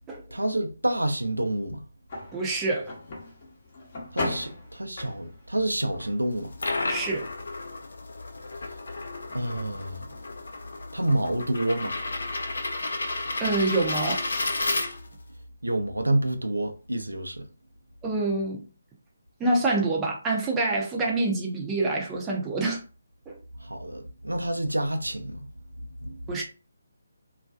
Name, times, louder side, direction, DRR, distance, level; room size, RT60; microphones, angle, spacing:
voice 1, 0.3-1.8 4.1-6.5 9.3-10.0 10.9-11.9 15.6-17.5 23.6-25.5 26.0-26.2, right 1 dB, 85° right, 0.5 m, -28 dB
sound 1, 2.1-10.8, left 2 dB, 40° left, 0.8 m, -40 dB
voice 2, 2.3-2.9 6.9-7.3 13.4-14.2 18.0-18.6 19.4-22.8 23.3-23.4 26.3-26.4, right 2 dB, 10° right, 0.5 m, -26 dB
sound 2, 6.3-15.3, left 2 dB, 60° left, 0.5 m, -32 dB
2.4 x 2.2 x 2.3 m
figure-of-eight pair, 150°, 0 cm